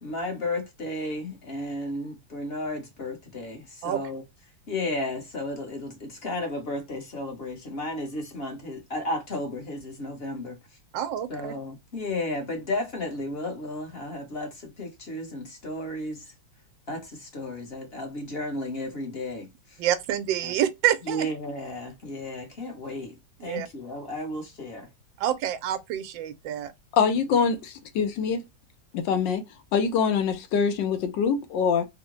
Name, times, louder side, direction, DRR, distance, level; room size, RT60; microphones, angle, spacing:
voice 1, 0.0-4.2 4.7-10.6 11.3-16.2 16.9-19.8 20.4-20.5 21.1-24.9, left 1 dB, 40° left, 1.0 m, -33 dB
voice 2, 10.9-11.5 19.8-21.3 23.4-23.7 25.2-26.7, right 11 dB, 90° right, 1.3 m, -27 dB
voice 3, 26.9-28.4 28.9-29.4 29.7-31.9, left 6 dB, 80° left, 1.4 m, -24 dB
3.7 x 2.1 x 3.0 m
omnidirectional pair, 2.0 m